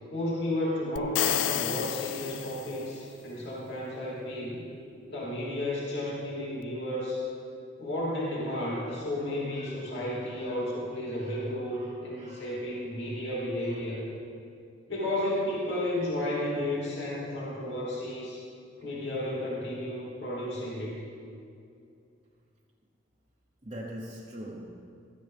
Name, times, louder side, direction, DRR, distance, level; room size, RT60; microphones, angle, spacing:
voice 1, 0.1-4.6 5.1-7.2 7.8-14.0 14.9-18.4 18.8-20.9, left 1 dB, 60° left, -6 dB, 3.0 m, -32 dB
sound 1, 1.0-3.0, left 11 dB, 85° left, 0.4 m, -30 dB
voice 2, 8.5-10.7 11.1-12.5 13.0-13.1 13.6-13.9 23.6-24.7, equal, 30° right, -4 dB, 1.0 m, -46 dB
15.5 x 14.0 x 3.5 m, 2.4 s
head